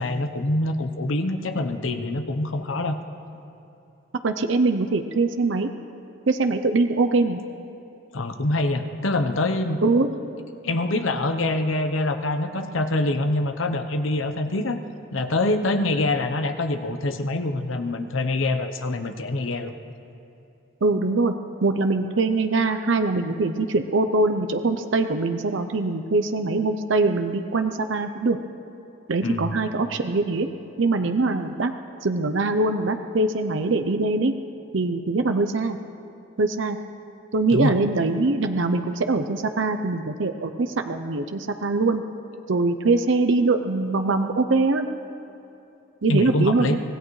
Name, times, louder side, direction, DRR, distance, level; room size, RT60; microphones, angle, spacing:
voice 1, 0.0-3.0 8.1-9.8 10.6-14.8 15.1-19.7 29.2-29.5 37.5-37.8 46.1-46.8, left 2 dB, 70° left, 7 dB, 0.9 m, -25 dB
voice 2, 4.2-5.7 6.3-7.4 9.8-10.1 20.8-21.3 21.6-28.4 29.1-30.5 30.8-31.7 32.0-34.3 34.7-35.8 36.4-36.8 37.3-42.0 42.5-44.9 46.0-46.8, right 3 dB, 65° right, 7 dB, 0.6 m, -22 dB
25.0 x 17.0 x 3.2 m, 2.8 s
head